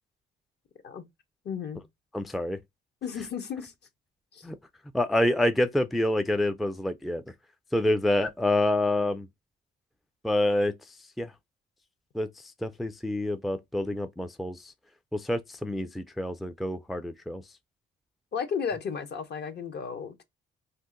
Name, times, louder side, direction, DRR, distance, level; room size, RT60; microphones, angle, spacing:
voice 1, 1.4-1.8 3.0-3.7 4.3-4.5 18.3-20.2, left 6 dB, 55° left, 0.8 m, -33 dB
voice 2, 2.1-2.6 4.4-4.6 4.9-7.2 7.7-9.3 10.2-10.7 11.2-11.3 12.1-12.3 12.6-14.6 15.1-17.4, left 1 dB, ahead, 0.3 m, -27 dB
2.7 x 2.5 x 3.6 m
cardioid pair, 90°, 20 cm